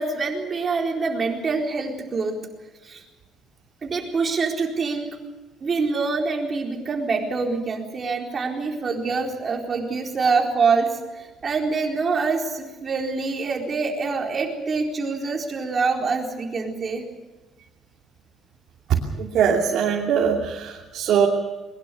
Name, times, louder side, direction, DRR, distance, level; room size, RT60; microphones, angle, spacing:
voice 1, 0.0-2.4 2.8-3.0 3.8-5.1 5.6-17.0, right 4 dB, 30° right, 1 dB, 4.2 m, -25 dB
voice 2, 18.9-21.3, right 7 dB, 60° right, -1 dB, 2.9 m, -21 dB
22.0 x 21.5 x 7.0 m, 1.1 s
cardioid pair, 155°, 0 cm